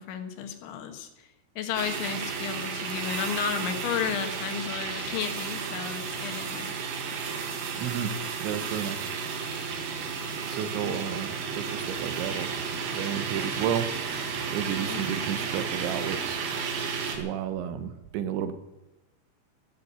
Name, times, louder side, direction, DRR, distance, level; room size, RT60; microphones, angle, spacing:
voice 1, 0.0-6.8 14.9-15.5, left 8 dB, 80° left, 7 dB, 3.8 m, -33 dB
sound 1, 1.8-17.2, right 6 dB, 65° right, 3.7 m, -33 dB
voice 2, 7.8-8.1 8.4-9.1 9.8-9.9 10.5-12.5 12.9-13.9 14.5-16.4 17.1-18.5, right 9 dB, 80° right, 10 dB, 3.4 m, -32 dB
14.0 x 11.0 x 8.1 m, 0.99 s
omnidirectional pair, 5.2 m